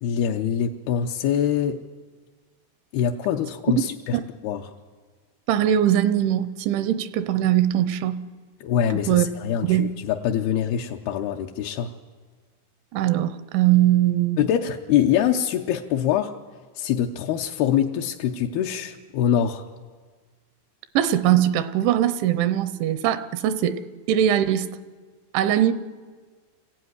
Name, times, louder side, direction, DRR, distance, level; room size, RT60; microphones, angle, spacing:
voice 1, 0.0-1.8 2.9-4.2 4.4-4.7 8.6-11.9 14.4-16.4 16.8-19.6, left 9 dB, 80° left, 2.3 m, -24 dB
voice 2, 5.5-8.2 9.1-9.3 9.6-9.9 12.9-14.4 21.0-23.8 24.1-24.7 25.3-25.7, right 11 dB, 80° right, 3.1 m, -21 dB
27.0 x 15.0 x 9.7 m
omnidirectional pair, 5.4 m